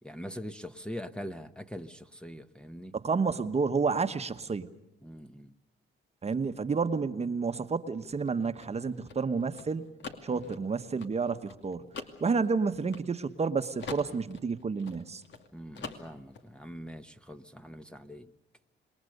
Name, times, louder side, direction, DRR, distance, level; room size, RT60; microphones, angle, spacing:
voice 1, 0.0-2.9 5.0-5.5 10.3-10.6 15.5-18.3, equal, 5° left, 9 dB, 1.0 m, -43 dB
voice 2, 2.9-4.7 6.2-9.9 10.2-11.9 12.2-15.2, right 5 dB, 30° right, 9 dB, 1.1 m, -30 dB
sound 1, 8.2-13.5 13.8-15.5 15.7-16.4, left 5 dB, 65° left, 2.5 m, -44 dB
27.0 x 21.0 x 6.7 m, 0.93 s
cardioid pair, 90°, 20 cm